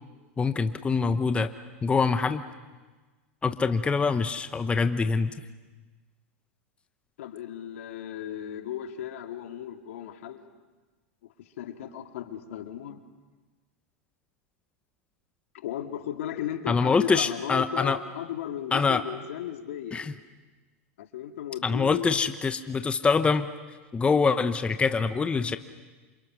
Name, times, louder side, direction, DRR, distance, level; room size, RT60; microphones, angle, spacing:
voice 1, 0.4-1.5 1.8-2.4 3.4-5.3 16.7-18.0 18.7-19.0 19.9-20.1 21.6-23.5 23.9-25.6, left 4 dB, 15° left, 10 dB, 0.9 m, -24 dB
voice 2, 7.2-10.4 11.2-13.0 15.5-20.1 21.0-22.1, left 10 dB, 70° left, 6 dB, 2.2 m, -36 dB
28.5 x 27.5 x 6.2 m, 1.3 s
hypercardioid pair, 115°, 7 cm